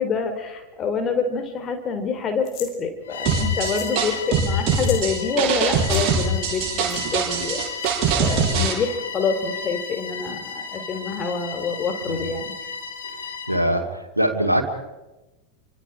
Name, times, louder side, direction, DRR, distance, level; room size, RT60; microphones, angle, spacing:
voice 1, 0.0-7.6 8.1-12.5, left 5 dB, 25° left, 6 dB, 3.7 m, -26 dB
sound 1, 2.4-2.7 3.6-4.0 4.3-4.4 4.7-5.1 5.8-6.0 6.9-7.0 7.8-8.1, left 9 dB, 45° left, 4.1 m, -38 dB
Bowed string instrument, 3.0-13.7, left 6 dB, 65° left, 2.7 m, -34 dB
sound 2, 3.3-8.7, right 6 dB, 35° right, 6.2 m, -22 dB
voice 2, 13.1-14.6, equal, 85° right, 3 dB, 2.5 m, -23 dB
28.5 x 25.5 x 5.0 m, 1.1 s
figure-of-eight pair, 90°, 0 cm